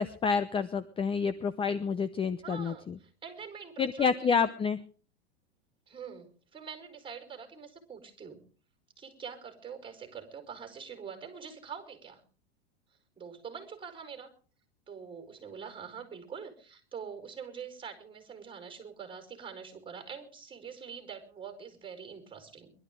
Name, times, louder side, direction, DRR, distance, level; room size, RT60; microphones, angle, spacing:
voice 1, 0.0-2.9 3.8-4.8, left 6 dB, 15° left, 14 dB, 0.7 m, -29 dB
voice 2, 2.4-4.3 5.9-8.4 9.0-12.2 13.2-14.3 14.9-22.7, right 6 dB, 15° right, 7 dB, 4.8 m, -45 dB
23.0 x 12.5 x 3.8 m, 0.39 s
hypercardioid pair, 115°, 31 cm